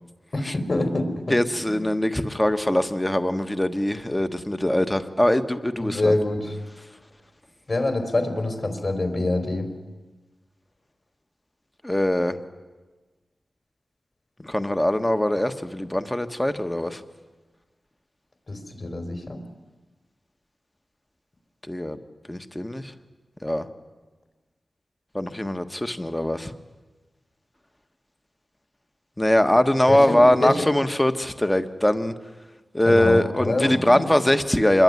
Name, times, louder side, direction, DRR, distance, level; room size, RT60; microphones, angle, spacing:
voice 1, 0.3-1.4 1.7-1.8 5.8-6.5 7.7-9.7 18.5-19.4 29.9-30.6 32.8-34.2, left 2 dB, 45° left, 6 dB, 4.1 m, -26 dB
voice 2, 1.3-6.1 11.8-12.4 14.4-17.0 21.7-22.0 22.3-22.9 23.4-23.7 25.1-26.5 29.2-32.1 32.7-34.8, left 1 dB, 10° left, 9 dB, 1.4 m, -22 dB
26.0 x 21.5 x 9.8 m, 1.2 s
wide cardioid pair, 105°, 0 cm